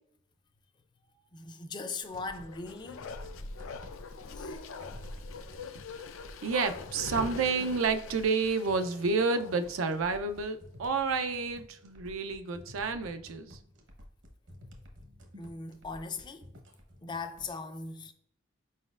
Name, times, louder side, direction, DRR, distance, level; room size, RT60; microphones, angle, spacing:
voice 1, 1.3-3.1 4.3-4.6 15.4-16.5 17.0-18.1, left 4 dB, 20° left, 0.3 m, -39 dB
sound 1, 2.1-17.6, left 1 dB, 65° right, 0.9 m, -52 dB
Bark, 2.3-9.8 10.2-10.3, left 4 dB, 90° left, 0.5 m, -43 dB
voice 2, 6.4-13.6, right 4 dB, 90° right, 0.5 m, -30 dB
4.9 x 4.1 x 2.4 m
head